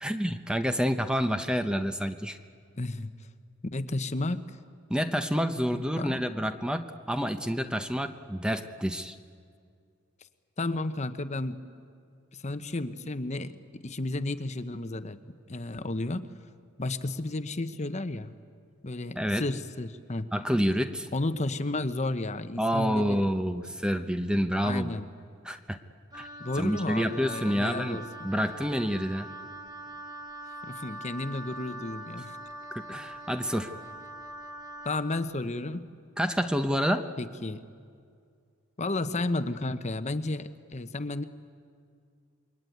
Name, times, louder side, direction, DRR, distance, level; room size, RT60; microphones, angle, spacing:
voice 1, 0.0-2.4 4.9-9.2 19.2-19.4 20.3-21.1 22.6-24.9 25.4-25.8 26.1-26.3 26.6-29.3 32.7-33.7 36.2-37.1, equal, 5° right, 8 dB, 0.8 m, -28 dB
voice 2, 2.7-3.1 3.7-4.6 5.7-6.2 10.6-11.6 12.3-15.2 15.5-16.2 16.8-18.3 18.8-20.3 21.1-23.2 24.6-25.1 26.4-28.3 30.6-32.4 34.8-35.8 37.2-37.6 38.8-41.2, left 2 dB, 35° left, 11 dB, 0.9 m, -32 dB
Wind instrument woodwind instrument, 26.1-35.3, right 1 dB, 20° right, 2.0 m, -43 dB
28.0 x 22.5 x 9.3 m, 2.3 s
head